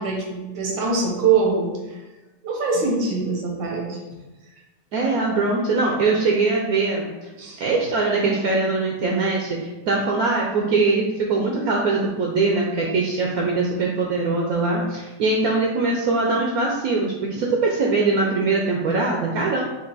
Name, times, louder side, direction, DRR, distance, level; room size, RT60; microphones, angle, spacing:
voice 1, 0.0-2.0 2.4-4.0 7.4-7.6, right 4 dB, 90° right, -1 dB, 1.7 m, -23 dB
voice 2, 4.9-7.3 7.6-19.6, right 3 dB, 70° right, -1 dB, 0.9 m, -22 dB
5.3 x 2.4 x 4.0 m, 1.1 s
omnidirectional pair, 1.9 m